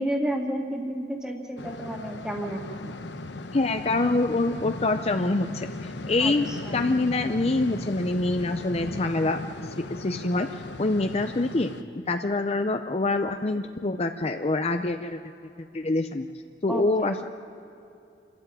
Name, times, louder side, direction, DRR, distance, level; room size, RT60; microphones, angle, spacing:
voice 1, 0.0-2.9 6.2-6.3 6.7-6.8 16.7-17.1, right 1 dB, 5° right, 1 dB, 2.1 m, -31 dB
sound 1, 1.6-11.8, left 2 dB, 85° left, 1.0 m, -37 dB
voice 2, 3.5-6.5 6.7-11.7 12.1-15.2 15.7-16.3 16.6-17.2, left 2 dB, 35° left, 7 dB, 0.6 m, -26 dB
28.5 x 13.0 x 9.0 m, 2.6 s
head